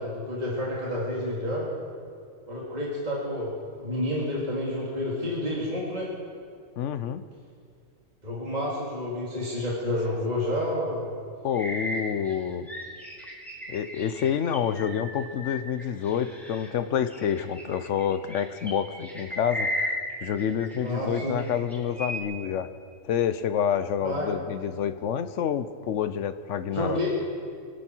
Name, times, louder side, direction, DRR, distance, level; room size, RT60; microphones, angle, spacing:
voice 1, 0.0-1.7 2.5-3.5 3.8-6.1 8.2-11.1 20.8-21.4 24.0-24.3 26.7-27.1, left 1 dB, 30° right, -5 dB, 2.5 m, -29 dB
voice 2, 6.8-7.2 11.4-12.7 13.7-22.7 23.0-27.0, left 8 dB, 65° left, 12 dB, 1.0 m, -28 dB
sound 1, 11.5-16.7 17.1-20.9 21.1-22.2, equal, ahead, 3.1 m, -35 dB
25.0 x 11.0 x 4.5 m, 2.3 s
omnidirectional pair, 1.4 m